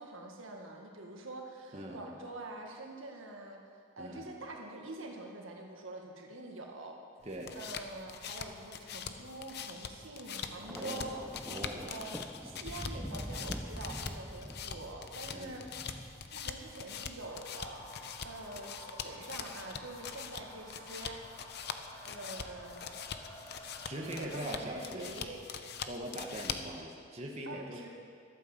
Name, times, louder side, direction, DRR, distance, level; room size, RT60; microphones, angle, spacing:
voice 1, 0.0-3.6 4.0-7.0 7.5-11.2 11.9-15.6 16.3-21.2 22.1-22.9 23.9-25.4 27.4-27.9, right 2 dB, 80° right, 1 dB, 1.7 m, -46 dB
voice 2, 1.7-2.0 4.0-4.3 7.2-7.6 10.7-11.1 11.5-12.0 15.3-15.7 23.9-25.1 25.8-27.9, right 1 dB, 30° right, 0 dB, 1.2 m, -41 dB
sound 1, 7.2-26.8, left 6 dB, 55° left, 0.7 m, -43 dB
Thunder, 10.6-16.9 17.9-18.2, equal, ahead, 0.3 m, -45 dB
sound 2, 17.2-24.3, left 1 dB, 25° left, 1.5 m, -52 dB
12.5 x 9.0 x 7.2 m, 2.2 s
head